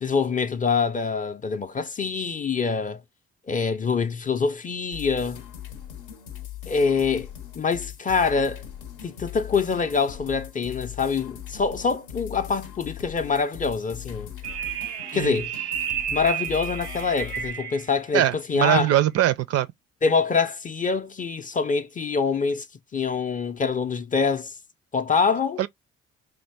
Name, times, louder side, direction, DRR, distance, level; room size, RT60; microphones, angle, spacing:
voice 1, 0.0-3.0 3.5-5.4 6.7-7.3 7.6-8.6 9.0-14.3 15.1-15.5 16.1-18.9 20.0-22.6 22.9-24.5 24.9-25.6, left 5 dB, 25° left, 0.5 m, -25 dB
sound 1, 4.9-17.5, left 11 dB, 75° left, 0.7 m, -40 dB
sound 2, 14.4-17.9, right 9 dB, 85° right, 0.7 m, -31 dB
voice 2, 18.1-19.7 25.6-25.7, right 12 dB, 50° right, 0.4 m, -22 dB
2.6 x 2.5 x 3.3 m
hypercardioid pair, 50°, 32 cm